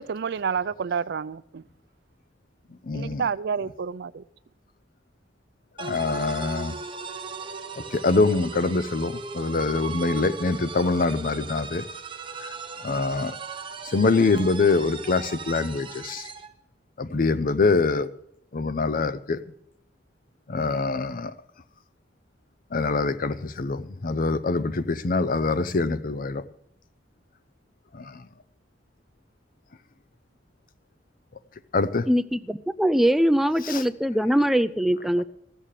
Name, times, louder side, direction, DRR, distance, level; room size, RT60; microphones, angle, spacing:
voice 1, 0.0-1.6 2.9-4.2, right 6 dB, 65° right, 16 dB, 0.4 m, -29 dB
voice 2, 2.8-3.2 5.8-6.8 7.8-11.9 12.4-12.5 12.8-13.3 13.8-16.3 17.0-18.1 18.5-19.4 20.5-21.3 22.7-26.4 27.9-28.2 31.7-32.1 33.7-33.8, left 3 dB, 50° left, 14 dB, 0.6 m, -24 dB
sound 1, 5.8-16.5, right 5 dB, 30° right, 0.9 m, -38 dB
voice 3, 32.1-35.2, equal, ahead, 11 dB, 0.4 m, -22 dB
15.0 x 6.7 x 7.4 m, 0.74 s
head